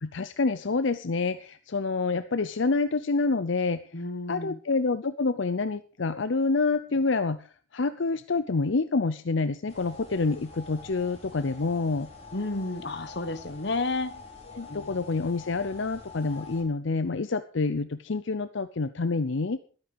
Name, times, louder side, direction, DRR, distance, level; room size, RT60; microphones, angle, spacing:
voice 1, 0.0-3.9 4.3-12.1 14.5-19.6, left 3 dB, 75° left, 0.7 m, -27 dB
voice 2, 3.9-4.6 12.3-14.2 14.7-15.0, left 2 dB, 60° left, 1.1 m, -32 dB
sound 1, 9.7-16.6, left 3 dB, 30° left, 4.0 m, -46 dB
13.5 x 12.0 x 5.2 m
head